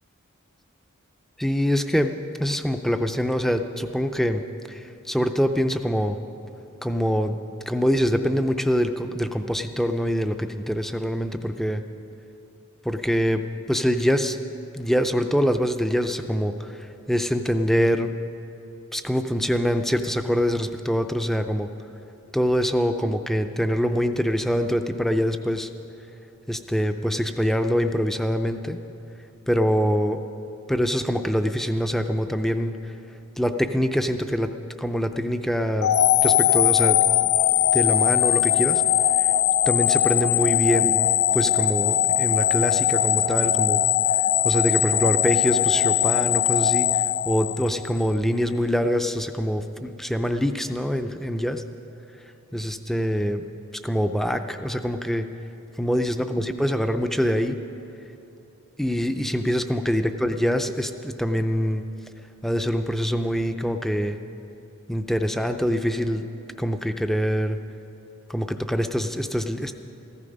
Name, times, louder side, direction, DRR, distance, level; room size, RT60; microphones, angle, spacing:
voice 1, 1.4-4.4 4.7-6.2 6.8-7.4 7.7-11.8 12.8-14.4 14.7-18.1 18.9-21.7 22.3-25.7 26.5-28.8 29.5-30.2 30.7-32.9 33.4-34.5 34.8-35.9 36.2-37.0 37.7-38.8 39.2-39.3 39.7-41.0 41.3-43.8 44.4-51.6 52.5-53.4 53.7-55.3 55.8-57.6 58.8-61.9 62.4-64.2 64.9-66.2 66.6-67.6 68.3-69.7, equal, ahead, 7 dB, 0.4 m, -24 dB
sound 1, 35.8-48.0, left 12 dB, 85° left, 0.4 m, -21 dB
15.0 x 13.5 x 5.3 m, 2.9 s
head